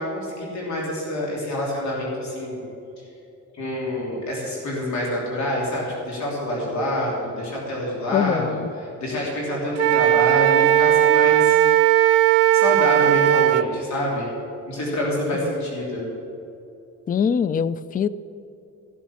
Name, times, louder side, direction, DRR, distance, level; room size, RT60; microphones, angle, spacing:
voice 1, 0.0-2.7 3.6-8.6 9.0-11.9 12.5-14.3 14.7-16.1, left 1 dB, 65° left, -3 dB, 3.2 m, -27 dB
voice 2, 8.1-8.7 15.4-15.5 17.1-18.1, left 7 dB, 30° left, 17 dB, 0.4 m, -23 dB
Wind instrument woodwind instrument, 9.8-13.7, right 13 dB, 55° right, 0.5 m, -17 dB
14.0 x 7.4 x 7.1 m, 2.7 s
cardioid pair, 90°, 30 cm